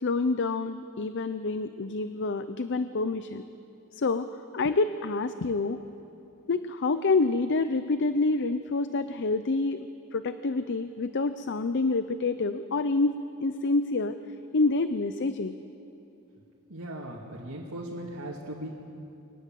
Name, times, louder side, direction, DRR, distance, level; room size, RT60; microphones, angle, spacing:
voice 1, 0.0-3.4 3.9-5.8 6.5-9.8 10.1-14.2 14.5-15.6, left 3 dB, 55° left, 11 dB, 0.6 m, -27 dB
voice 2, 16.7-18.7, right 1 dB, 85° right, -4 dB, 2.5 m, -38 dB
23.0 x 19.5 x 7.6 m, 2.8 s
head